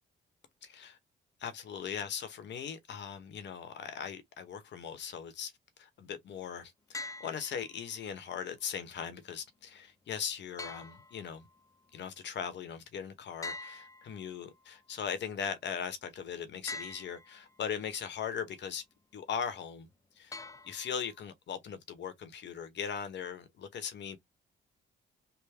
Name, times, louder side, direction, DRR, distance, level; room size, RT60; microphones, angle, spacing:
voice 1, 0.6-1.0 1.4-5.5 5.8-11.4 11.9-18.8 19.1-19.9 20.2-24.2, left 7 dB, 65° left, 1.0 m, -39 dB
sound 1, 6.9-7.9 10.6-11.7 13.4-14.6 16.7-17.6 20.3-21.2, left 3 dB, 15° left, 0.4 m, -45 dB
3.4 x 2.1 x 3.4 m
cardioid pair, 90°, 20 cm